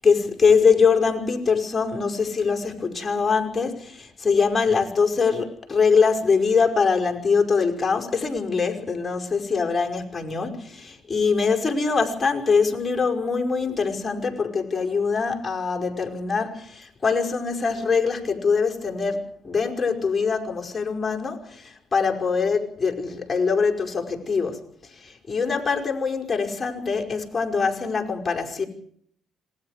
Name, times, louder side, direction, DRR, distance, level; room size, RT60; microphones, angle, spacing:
voice 1, 0.0-28.6, left 5 dB, 25° left, 5.4 m, -23 dB
27.0 x 20.5 x 5.0 m
cardioid pair, 90°, 0 cm